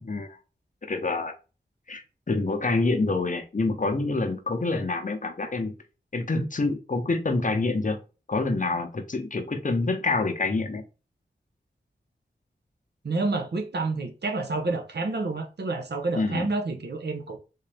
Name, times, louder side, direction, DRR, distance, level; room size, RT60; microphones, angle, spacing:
voice 1, 0.0-0.4 0.8-1.3 1.9-5.7 6.1-8.0 8.3-10.8 16.2-16.5, left 3 dB, 45° left, 0.7 m, -27 dB
voice 2, 13.0-17.4, right 3 dB, 65° right, 0.8 m, -29 dB
3.7 x 2.6 x 3.3 m
cardioid pair, 50°, 19 cm